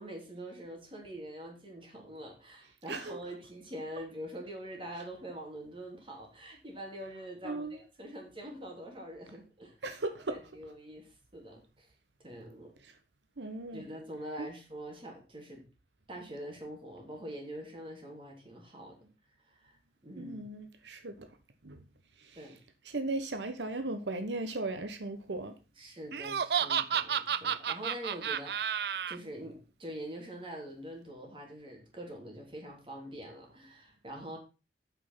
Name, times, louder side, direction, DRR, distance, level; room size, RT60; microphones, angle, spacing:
voice 1, 0.0-9.8 10.3-11.9 12.2-12.7 13.7-15.6 16.1-19.1 19.5-20.4 22.4-22.6 25.8-28.8 29.1-34.4, right 1 dB, 30° right, 3.3 m, -44 dB
voice 2, 2.9-3.2 7.4-7.8 9.8-10.4 12.8-12.9 13.4-13.8 14.4-14.5 20.2-21.3 21.6-21.8 22.2-22.4 22.8-25.5, right 2 dB, 90° right, 1.1 m, -37 dB
Laughter, 26.1-29.2, right 8 dB, 65° right, 0.5 m, -31 dB
8.3 x 6.3 x 5.6 m
head